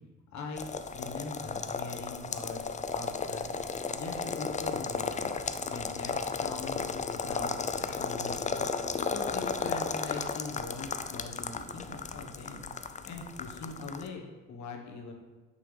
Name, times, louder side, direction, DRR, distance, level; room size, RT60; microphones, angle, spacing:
voice 1, 0.3-0.7 0.9-5.4 5.7-6.8 7.1-7.5 7.8-8.7 9.1-12.7 13.0-14.2 14.5-15.1, left 3 dB, 70° left, 1 dB, 1.3 m, -42 dB
sound 1, 0.6-14.1, left 5 dB, 25° left, 0.4 m, -34 dB
sound 2, 5.4-12.6, left 1 dB, 65° right, 2.3 m, -56 dB
8.3 x 5.6 x 3.3 m, 1.2 s
cardioid pair, 90°, 30 cm